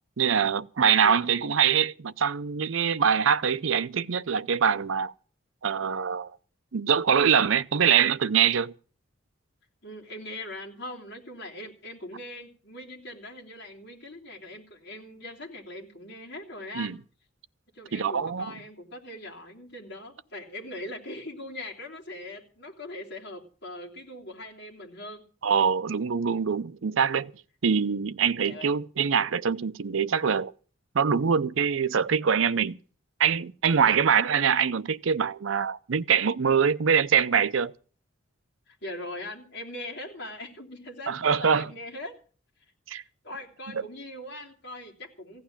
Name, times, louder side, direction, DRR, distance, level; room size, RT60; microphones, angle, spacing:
voice 1, 0.2-5.1 5.6-6.3 6.7-8.7 16.7-17.0 17.9-18.5 25.4-27.3 27.6-30.5 30.9-32.8 33.2-37.7 41.1-41.7 42.9-43.0, right 7 dB, 80° right, 0.6 m, -24 dB
voice 2, 9.8-17.0 17.7-25.2 28.4-28.7 33.8-34.2 38.7-42.1 43.2-45.4, left 1 dB, 55° left, 3.1 m, -41 dB
16.0 x 9.4 x 7.2 m
head